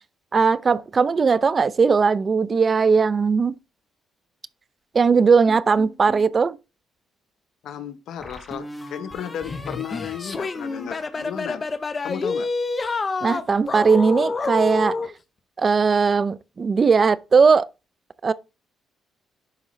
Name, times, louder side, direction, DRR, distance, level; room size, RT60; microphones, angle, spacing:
voice 1, 0.3-3.5 4.9-6.6 13.2-15.0 15.6-17.7 18.2-18.3, right 5 dB, 35° right, 0.5 m, -18 dB
sound 1, 5.5-6.3 8.2-11.8, left 1 dB, 10° left, 1.6 m, -40 dB
voice 2, 7.6-11.6 12.0-12.5, left 9 dB, 80° left, 0.9 m, -34 dB
sound 2, 9.4-15.1, left 3 dB, 35° left, 0.8 m, -28 dB
10.5 x 3.8 x 3.1 m
cardioid pair, 90°, 0 cm